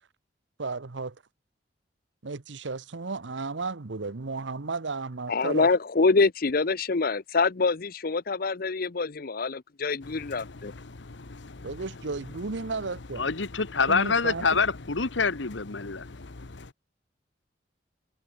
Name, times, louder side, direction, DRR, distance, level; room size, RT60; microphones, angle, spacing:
voice 1, 0.6-1.2 2.2-5.7 11.6-13.3 13.9-14.6, right 3 dB, 80° right, 1.0 m, -34 dB
voice 2, 5.3-10.7, left 4 dB, 50° left, 0.7 m, -25 dB
Engine, 10.0-16.7, left 2 dB, 75° left, 1.0 m, -44 dB
voice 3, 13.2-16.1, left 5 dB, 90° left, 1.5 m, -26 dB
head